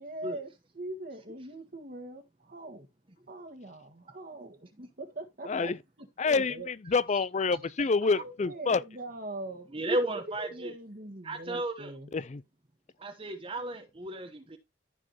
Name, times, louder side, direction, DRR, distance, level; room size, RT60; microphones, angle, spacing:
voice 1, 0.0-2.9 3.3-4.6 5.0-6.7 8.0-9.7 10.3-12.1, right 2 dB, 50° right, 1.7 m, -42 dB
voice 2, 5.5-5.8 6.2-8.8 12.1-12.4, left 4 dB, 40° left, 0.5 m, -27 dB
voice 3, 9.7-10.7 11.2-11.9 13.0-14.6, right 1 dB, 30° right, 1.0 m, -33 dB
14.5 x 4.9 x 2.9 m
head